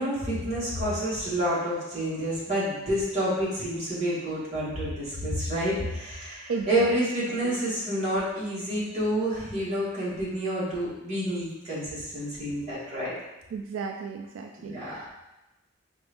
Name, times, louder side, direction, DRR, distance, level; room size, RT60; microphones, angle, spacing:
voice 1, 0.0-13.1 14.6-15.0, equal, 35° right, -8 dB, 1.5 m, -29 dB
voice 2, 6.5-7.0 7.3-7.6 13.5-15.1, right 5 dB, 85° right, 2 dB, 0.3 m, -35 dB
5.0 x 2.5 x 3.4 m, 0.97 s
head